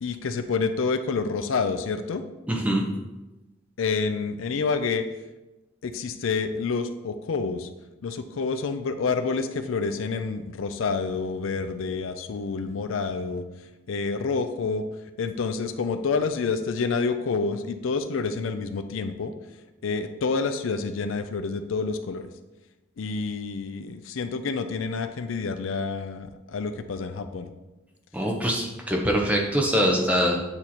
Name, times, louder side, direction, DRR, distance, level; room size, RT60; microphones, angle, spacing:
voice 1, 0.0-2.2 3.8-5.0 5.8-7.7 8.0-13.5 13.9-14.8 15.2-19.3 19.8-22.3 23.0-27.5, left 4 dB, 80° left, 9 dB, 0.4 m, -28 dB
voice 2, 2.5-2.8 28.1-30.4, equal, 5° right, 1 dB, 0.7 m, -23 dB
8.6 x 3.0 x 4.1 m, 1.1 s
head